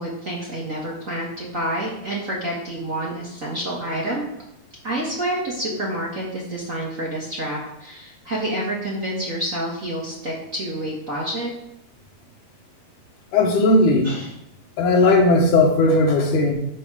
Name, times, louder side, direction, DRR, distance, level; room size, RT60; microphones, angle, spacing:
voice 1, 0.0-4.2 4.8-11.5 14.0-14.3, right 1 dB, 35° right, -5 dB, 1.5 m, -28 dB
voice 2, 13.3-14.1 14.8-16.5, left 2 dB, 85° left, 1 dB, 2.9 m, -17 dB
9.0 x 4.2 x 6.1 m, 0.80 s
omnidirectional pair, 3.5 m